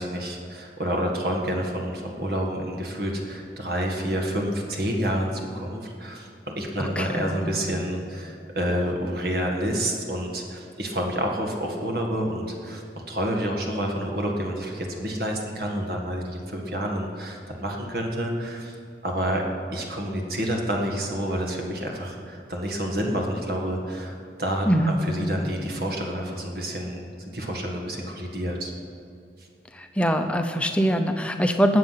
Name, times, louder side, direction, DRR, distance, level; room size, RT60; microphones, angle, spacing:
voice 1, 0.0-6.3 6.6-18.7 19.0-19.4 19.7-28.7, equal, 55° right, 1 dB, 1.8 m, -29 dB
voice 2, 6.8-7.6 24.7-25.0 29.7-31.8, equal, 5° left, 5 dB, 0.8 m, -23 dB
21.0 x 7.9 x 5.8 m, 2.5 s
head